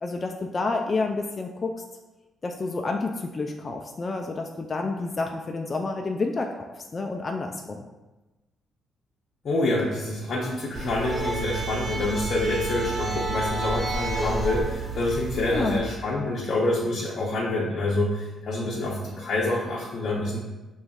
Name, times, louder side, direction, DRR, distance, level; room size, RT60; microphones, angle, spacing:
voice 1, 0.0-1.7 2.4-6.6 6.9-7.8 15.5-15.8, left 3 dB, 35° left, 2 dB, 0.3 m, -29 dB
voice 2, 9.4-20.4, left 2 dB, 55° left, -4 dB, 0.7 m, -27 dB
sound 1, 10.8-15.8, right 3 dB, 25° right, 0.5 m, -30 dB
5.0 x 3.0 x 2.3 m, 1.1 s
cardioid pair, 90°, 0 cm